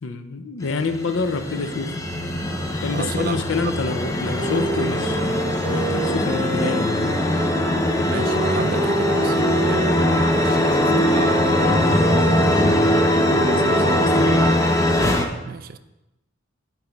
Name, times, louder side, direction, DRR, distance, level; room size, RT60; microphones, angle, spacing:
voice 1, 0.0-2.0 2.8-7.3 13.3-14.6, left 4 dB, 70° left, 0.5 m, -27 dB
sound 1, 0.6-15.3, left 1 dB, 15° left, 0.5 m, -21 dB
voice 2, 2.9-3.5 8.0-12.5 15.4-15.8, right 5 dB, 45° right, 0.3 m, -32 dB
sound 2, 4.3-14.3, right 1 dB, 30° right, 0.8 m, -28 dB
8.9 x 3.2 x 5.8 m
head